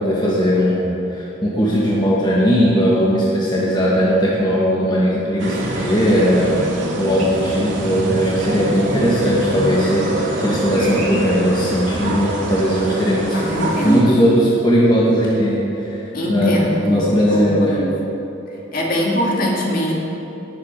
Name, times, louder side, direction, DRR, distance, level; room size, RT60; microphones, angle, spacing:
voice 1, 0.0-6.5 7.0-16.0 16.3-17.8, equal, 25° left, -6 dB, 1.5 m, -18 dB
sound 1, 5.4-14.0, right 1 dB, 75° right, 2.1 m, -25 dB
voice 2, 13.3-14.2 16.1-17.9 18.7-19.9, equal, 45° left, -2 dB, 2.2 m, -22 dB
18.0 x 7.9 x 5.3 m, 3.0 s
head